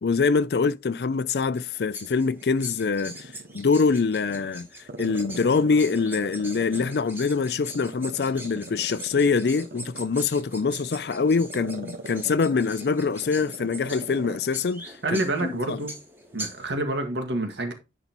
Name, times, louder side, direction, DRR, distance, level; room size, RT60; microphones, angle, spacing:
voice 1, 0.0-4.7 5.0-15.8, left 4 dB, 65° left, 0.4 m, -24 dB
sound 1, 1.6-16.7, right 1 dB, 10° right, 2.8 m, -43 dB
Growling, 2.0-3.8 4.2-7.2 7.7-14.5 14.8-14.9, right 2 dB, 55° right, 1.3 m, -41 dB
voice 2, 15.0-16.0 16.3-17.7, right 1 dB, 85° right, 1.9 m, -28 dB
10.5 x 5.5 x 3.0 m
head